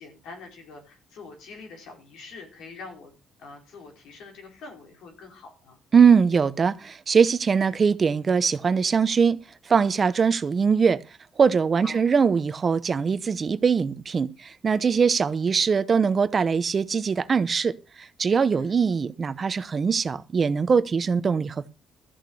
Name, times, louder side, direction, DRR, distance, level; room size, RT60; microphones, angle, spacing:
voice 1, 0.0-3.1 3.4-5.8 11.8-12.0 18.5-18.8, left 4 dB, 85° left, 4.6 m, -44 dB
voice 2, 5.9-9.4 9.7-11.0 11.4-21.7, right 6 dB, 40° right, 0.9 m, -22 dB
13.5 x 6.7 x 6.4 m
cardioid pair, 90°, 0 cm